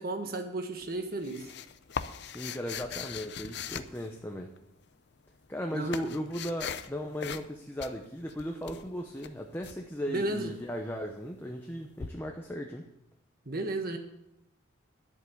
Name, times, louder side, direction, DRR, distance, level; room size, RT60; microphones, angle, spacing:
voice 1, 0.0-1.5 5.7-6.2 10.1-10.5 13.4-14.0, right 2 dB, 50° right, 6 dB, 1.4 m, -34 dB
sound 1, 0.8-4.6 5.4-6.9 7.2-7.5 7.8-9.8 12.0-12.1, left 7 dB, 60° left, 0.6 m, -40 dB
voice 2, 2.3-4.5 5.5-12.9, equal, 10° left, 2 dB, 0.8 m, -36 dB
11.0 x 7.9 x 6.9 m, 0.86 s
head